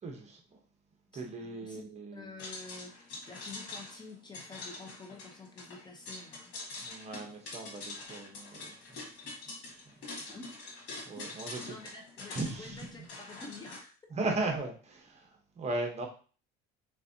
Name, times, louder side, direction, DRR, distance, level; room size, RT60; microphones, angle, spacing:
voice 1, 0.0-0.6 1.1-2.3 6.8-8.6 9.9-10.0 11.1-11.6 12.3-12.8 14.1-15.3 15.6-16.1, right 2 dB, 35° right, 2 dB, 1.0 m, -37 dB
voice 2, 1.1-2.9 3.3-6.5 10.3-10.5 11.1-11.2 11.7-14.0, left 3 dB, 20° left, 1 dB, 0.7 m, -49 dB
sound 1, 2.4-13.8, left 3 dB, 70° left, 2.0 m, -45 dB
4.0 x 3.5 x 2.7 m, 0.38 s
cardioid pair, 125°, 20 cm